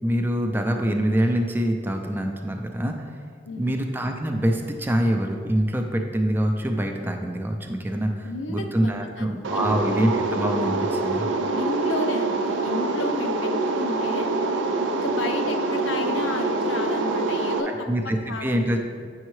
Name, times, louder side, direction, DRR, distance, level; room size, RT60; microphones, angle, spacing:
voice 1, 0.0-3.2 3.6-11.3 17.6-18.8, equal, 10° right, 3 dB, 0.4 m, -25 dB
voice 2, 3.5-3.8 8.2-9.3 9.5-9.9 11.6-14.3 14.9-17.7 18.3-18.8, left 2 dB, 85° left, 5 dB, 0.6 m, -32 dB
sound 1, 9.4-17.6, right 2 dB, 85° right, 0.5 m, -25 dB
8.3 x 5.5 x 3.1 m, 2.1 s
head